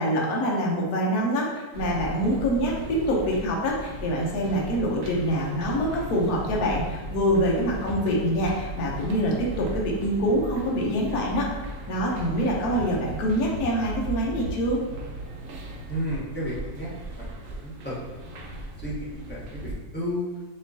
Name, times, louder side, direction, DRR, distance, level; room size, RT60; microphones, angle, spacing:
voice 1, 0.0-11.5 11.9-14.8, equal, 60° left, -3 dB, 1.2 m, -25 dB
sound 1, 1.7-19.8, right 1 dB, 65° right, 0.8 m, -37 dB
voice 2, 15.9-16.9 17.2-20.3, equal, 10° left, -9 dB, 0.7 m, -33 dB
5.4 x 3.0 x 2.7 m, 1.3 s
omnidirectional pair, 2.0 m